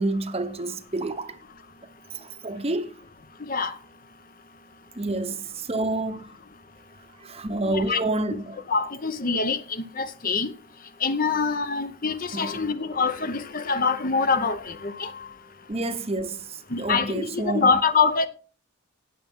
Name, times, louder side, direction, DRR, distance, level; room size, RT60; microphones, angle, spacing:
voice 1, 0.0-1.4 2.1-2.9 5.0-6.2 7.2-8.6 12.3-12.5 15.7-16.4 16.8-17.7, right 2 dB, 30° right, 0.8 m, -28 dB
voice 2, 7.7-8.0 8.7-10.5 11.0-15.1 16.7-18.3, left 4 dB, 40° left, 0.8 m, -25 dB
18.0 x 7.1 x 3.6 m
head